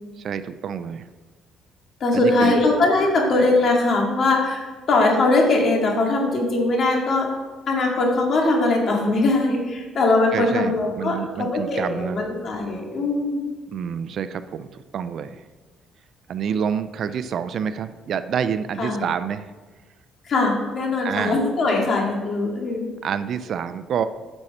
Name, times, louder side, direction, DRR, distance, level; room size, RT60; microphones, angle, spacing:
voice 1, 0.2-1.1 2.1-2.6 10.3-12.2 13.7-15.4 16.3-19.5 21.0-21.4 23.0-24.0, right 7 dB, 55° right, 12 dB, 0.4 m, -27 dB
voice 2, 2.0-7.3 7.7-13.5 18.8-19.1 20.2-22.9, left 2 dB, 45° left, 0 dB, 2.2 m, -21 dB
8.9 x 6.5 x 4.2 m, 1.4 s
cardioid pair, 125°, 0 cm